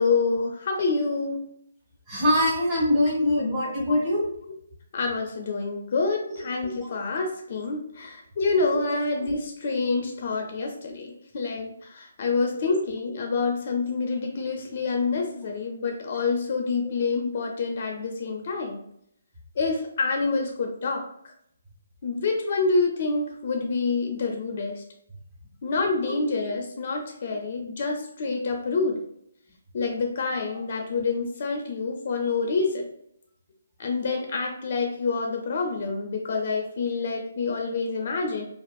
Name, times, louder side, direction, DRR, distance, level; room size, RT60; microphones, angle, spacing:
voice 1, 0.0-1.4 4.9-18.8 19.6-21.1 22.0-24.8 25.6-29.0 29.7-32.9 33.8-38.4, left 4 dB, 45° left, 2 dB, 0.4 m, -27 dB
voice 2, 2.1-4.2 8.8-9.0 10.5-10.6 12.5-12.7 26.0-26.3, left 1 dB, 10° right, -8 dB, 1.0 m, -23 dB
2.5 x 2.4 x 2.3 m, 0.70 s
hypercardioid pair, 155°, 0 cm